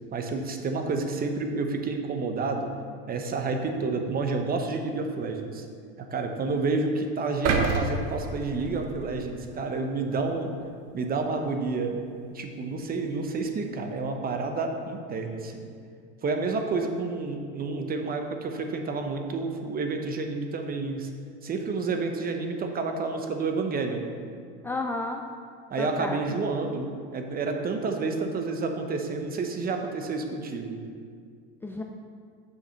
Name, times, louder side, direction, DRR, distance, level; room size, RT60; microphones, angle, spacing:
voice 1, 0.1-2.8 3.1-5.7 6.0-10.5 10.9-12.0 12.3-15.7 16.2-21.1 21.4-24.1 25.7-30.8, right 3 dB, 30° right, 5 dB, 0.9 m, -29 dB
sound 1, 7.5-9.6 10.1-10.2, right 4 dB, 55° right, 1.0 m, -29 dB
voice 2, 24.6-25.2 25.8-26.4 31.6-31.8, left 2 dB, 5° left, 2 dB, 0.3 m, -32 dB
6.7 x 5.6 x 5.8 m, 2.2 s
supercardioid pair, 105°, 32 cm